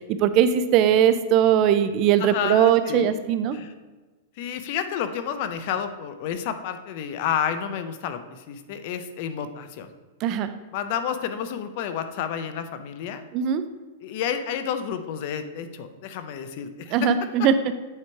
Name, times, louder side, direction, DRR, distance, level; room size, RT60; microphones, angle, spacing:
voice 1, 0.1-3.6 10.2-10.5 13.3-13.6 16.9-17.5, right 9 dB, 35° right, 11 dB, 0.4 m, -20 dB
voice 2, 2.2-3.2 3.5-3.7 4.4-9.9 10.7-13.2 14.0-17.1 17.4-17.5, left 8 dB, 45° left, 9 dB, 0.6 m, -30 dB
8.7 x 3.1 x 4.5 m, 1.3 s
supercardioid pair, 155°, 0 cm